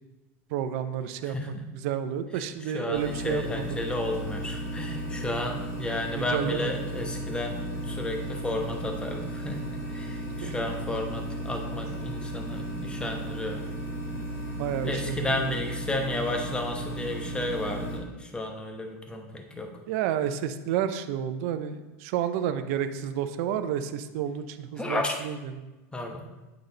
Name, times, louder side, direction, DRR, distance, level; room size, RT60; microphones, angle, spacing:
voice 1, 0.5-3.6 6.2-7.1 10.4-10.5 14.6-15.5 19.9-25.6, right 9 dB, 65° right, 11 dB, 0.5 m, -31 dB
voice 2, 1.3-1.6 2.7-9.6 9.9-13.6 14.8-19.7 24.8-25.1 25.9-26.2, left 2 dB, 10° left, 3 dB, 1.0 m, -32 dB
sound 1, 2.9-18.0, right 1 dB, 35° left, 2.0 m, -35 dB
8.5 x 3.9 x 4.0 m, 1.1 s
supercardioid pair, 115°, 8 cm